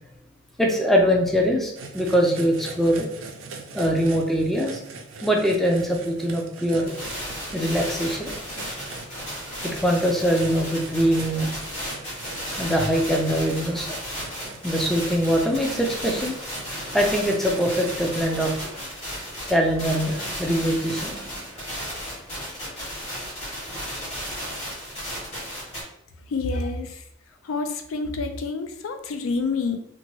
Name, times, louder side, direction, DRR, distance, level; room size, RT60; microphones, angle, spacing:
voice 1, 0.6-3.1 3.7-4.8 5.2-6.9 7.5-8.7 9.7-11.5 12.6-13.9 14.6-16.4 16.9-18.6 19.5-21.4, equal, ahead, 0 dB, 0.3 m, -23 dB
sound 1, 1.7-18.5, right 3 dB, 70° right, 0.4 m, -42 dB
sound 2, 6.9-25.8, equal, 30° left, 1.3 m, -34 dB
voice 2, 26.3-27.0 27.4-29.8, left 3 dB, 85° left, 6 dB, 0.4 m, -28 dB
2.8 x 2.1 x 3.0 m, 0.74 s
head